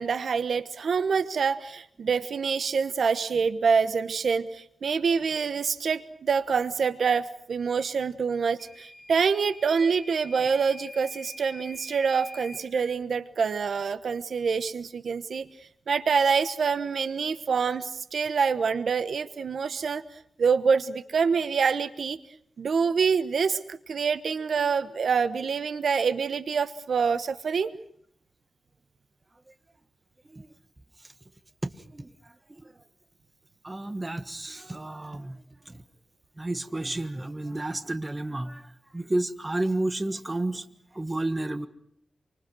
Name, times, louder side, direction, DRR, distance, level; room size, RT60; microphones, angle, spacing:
voice 1, 0.0-15.5 15.9-20.0 20.4-22.2 22.6-27.7, right 5 dB, 70° right, 13 dB, 1.1 m, -26 dB
Microwave oven / Alarm, 8.6-12.7, left 1 dB, 35° left, 6.6 m, -45 dB
voice 2, 31.6-32.1 32.5-32.7 33.6-35.8 36.4-38.7 38.9-40.6 40.9-41.7, right 2 dB, 20° right, 10 dB, 1.5 m, -31 dB
27.5 x 25.0 x 6.2 m, 0.67 s
wide cardioid pair, 110°, 0 cm